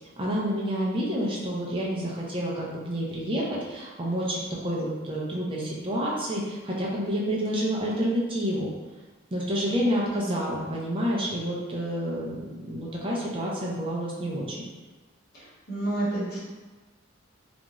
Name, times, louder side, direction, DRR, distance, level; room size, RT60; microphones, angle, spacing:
voice 1, 0.2-8.7 9.3-12.4 12.7-14.7, equal, 25° right, -4 dB, 0.5 m, -29 dB
voice 2, 15.7-16.4, right 2 dB, 50° left, -9 dB, 1.1 m, -29 dB
2.5 x 2.3 x 2.9 m, 1.2 s
head